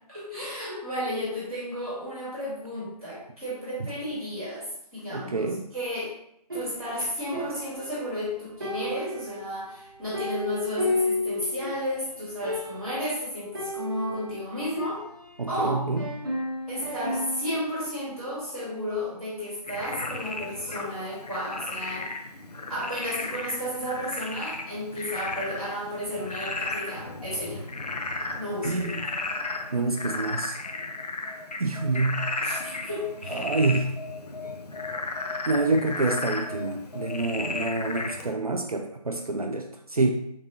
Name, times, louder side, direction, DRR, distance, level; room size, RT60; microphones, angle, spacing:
voice 1, 0.1-6.1 6.5-15.0 15.5-15.8 16.7-22.1 22.7-27.6 28.4-28.9 32.4-33.5, left 1 dB, ahead, -24 dB, 0.9 m, -33 dB
voice 2, 5.1-5.7 15.4-16.1 28.6-29.0 29.7-30.6 31.6-32.4 33.3-34.0 35.5-40.1, right 3 dB, 60° right, 3 dB, 0.4 m, -27 dB
sound 1, 6.5-8.3 8.6-11.9 12.2-12.3 12.4-13.0 13.5-15.5 16.0-17.6, left 1 dB, 35° right, 0.8 m, -33 dB
Frog, 19.7-38.3, left 3 dB, 70° left, 0.5 m, -34 dB
3.7 x 2.5 x 3.0 m, 0.75 s
figure-of-eight pair, 160°, 21 cm